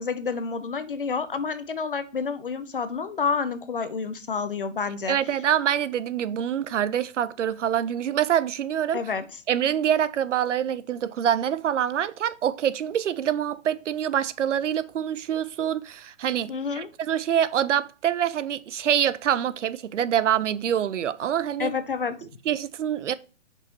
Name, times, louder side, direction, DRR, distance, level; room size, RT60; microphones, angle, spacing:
voice 1, 0.0-5.2 8.9-9.3 16.5-16.9 21.6-22.3, left 5 dB, 45° left, 0.5 m, -29 dB
voice 2, 5.1-9.0 9.5-21.7 22.5-23.1, right 9 dB, 70° right, 0.5 m, -25 dB
5.4 x 4.1 x 4.3 m
hypercardioid pair, 180°, 39 cm